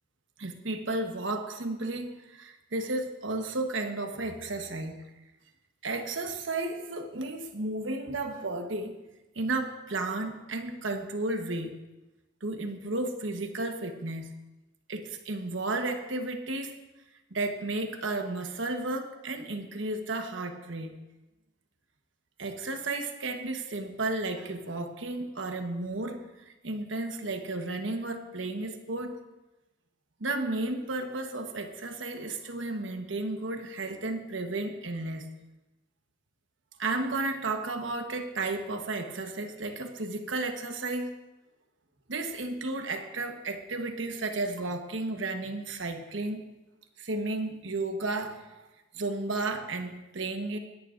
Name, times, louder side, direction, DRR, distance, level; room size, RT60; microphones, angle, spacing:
voice 1, 0.4-5.0 5.8-9.0 9.3-11.8 12.4-14.3 14.9-16.7 17.3-20.9 22.4-26.2 26.6-29.2 30.2-35.3 36.8-41.1 42.1-46.5 47.0-48.7 48.9-50.6, right 2 dB, 80° right, 5 dB, 1.2 m, -33 dB
20.0 x 10.5 x 2.6 m, 1.0 s
head